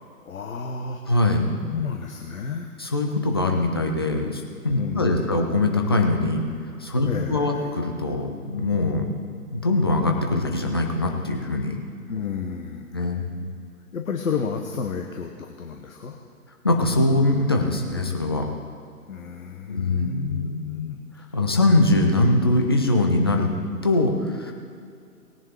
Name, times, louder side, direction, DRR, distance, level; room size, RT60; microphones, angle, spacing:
voice 1, 0.2-1.0 1.7-2.8 4.7-5.3 7.0-7.7 12.1-13.3 13.9-16.2 19.1-21.0 21.3-21.5, left 6 dB, 60° left, 3 dB, 1.2 m, -31 dB
voice 2, 1.1-1.4 2.8-6.4 6.8-9.1 9.5-11.8 12.9-13.3 16.6-18.5 19.6-20.6 21.3-23.5 23.8-24.5, left 2 dB, 15° left, 2 dB, 0.5 m, -22 dB
19.0 x 7.2 x 4.9 m, 2.4 s
figure-of-eight pair, 135°, 46 cm